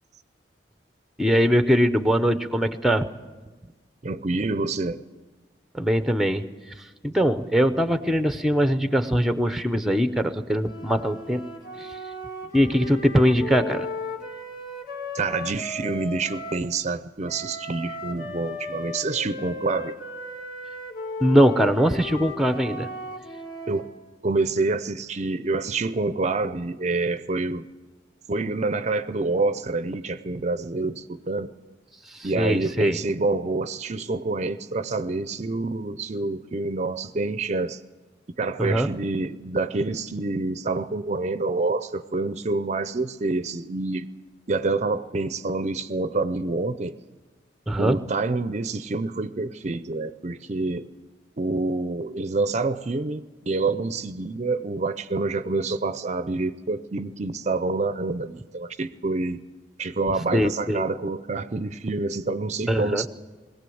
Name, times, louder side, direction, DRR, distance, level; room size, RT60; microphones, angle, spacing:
voice 1, 1.2-3.1 5.7-6.4 7.0-11.4 11.8-11.9 12.5-13.9 21.2-22.9 32.4-33.0 38.6-38.9 47.7-48.0 60.3-60.8 62.7-63.1, equal, ahead, 0.7 m, -21 dB
voice 2, 4.0-5.0 15.1-20.0 23.7-23.9 24.2-27.7 28.3-31.5 32.2-37.8 38.4-44.1 44.5-47.0 47.8-50.9 51.4-59.4 59.8-63.1, right 3 dB, 40° right, 0.5 m, -27 dB
sound 1, 10.6-16.7 17.2-23.9, left 2 dB, 50° left, 2.5 m, -36 dB
22.0 x 17.0 x 7.8 m
head